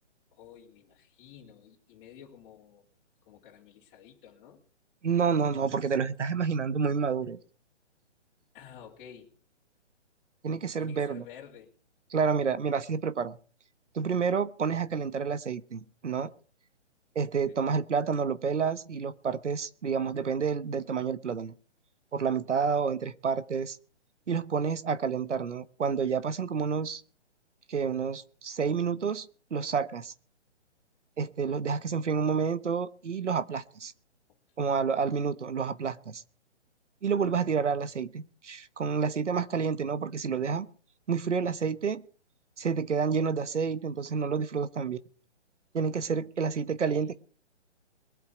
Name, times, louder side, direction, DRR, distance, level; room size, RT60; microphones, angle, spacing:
voice 1, 0.3-2.8 3.2-4.6 8.5-9.3 10.8-11.7 17.5-17.8 46.8-47.1, left 8 dB, 25° left, -3 dB, 3.3 m, -52 dB
voice 2, 5.0-7.4 10.4-11.2 12.1-13.4 13.9-16.3 17.1-21.5 22.1-23.8 24.3-27.0 27.7-29.3 29.5-30.1 31.2-33.9 34.6-36.2 37.0-40.7 41.1-42.0 42.6-45.0 45.7-47.1, right 6 dB, 85° right, 15 dB, 1.2 m, -29 dB
22.5 x 8.3 x 4.5 m, 0.42 s
hypercardioid pair, 150°, 35 cm